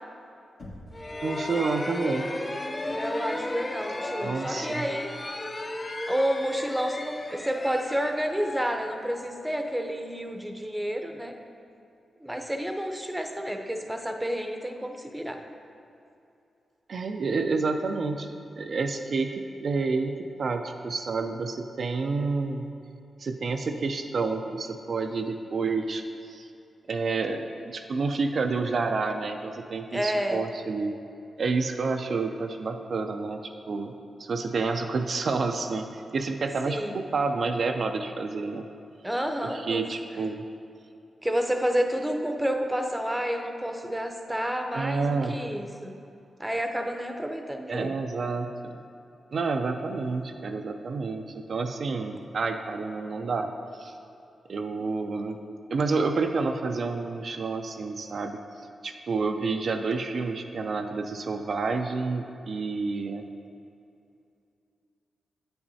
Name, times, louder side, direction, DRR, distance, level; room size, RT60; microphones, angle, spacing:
Knock, 0.6-1.2, left 1 dB, 70° left, 1.5 m, -44 dB
sound 1, 0.9-9.6, left 2 dB, 30° left, 0.4 m, -35 dB
voice 1, 1.2-2.3 4.2-4.9 16.9-22.7 23.2-26.0 26.3-26.5 26.9-30.9 31.4-33.4 33.7-33.9 34.2-38.7 39.4-40.4 44.7-45.4 47.7-48.7 49.3-53.5 53.8-53.9 54.5-55.4 55.7-58.4 58.8-63.2, right 4 dB, 60° right, 5 dB, 0.4 m, -29 dB
voice 2, 2.9-5.1 6.1-11.4 12.2-15.4 29.9-30.4 36.7-37.0 39.0-39.8 41.2-45.9 46.4-47.9, equal, 10° right, 4 dB, 0.7 m, -30 dB
8.8 x 7.8 x 2.7 m, 2.6 s
cardioid pair, 70°, 0 cm